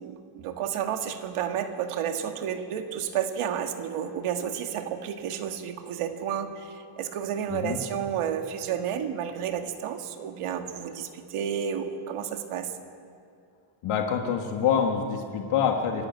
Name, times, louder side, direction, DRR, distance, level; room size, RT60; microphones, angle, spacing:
voice 1, 0.0-12.7, right 8 dB, 85° right, 6 dB, 1.8 m, -31 dB
voice 2, 7.5-7.8 13.8-16.1, left 7 dB, 80° left, 3 dB, 1.8 m, -26 dB
26.0 x 11.5 x 9.6 m, 2.4 s
cardioid pair, 170°, 50 cm